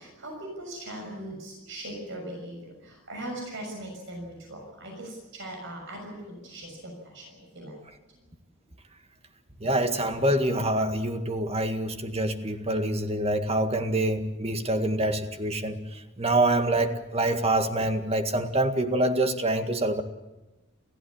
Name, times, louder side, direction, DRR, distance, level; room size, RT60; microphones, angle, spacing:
voice 1, 0.0-7.8 8.1-8.3, right 1 dB, 60° right, 1 dB, 6.5 m, -40 dB
voice 2, 9.6-20.0, right 1 dB, 30° right, 6 dB, 1.9 m, -26 dB
29.5 x 15.0 x 8.6 m, 1.0 s
head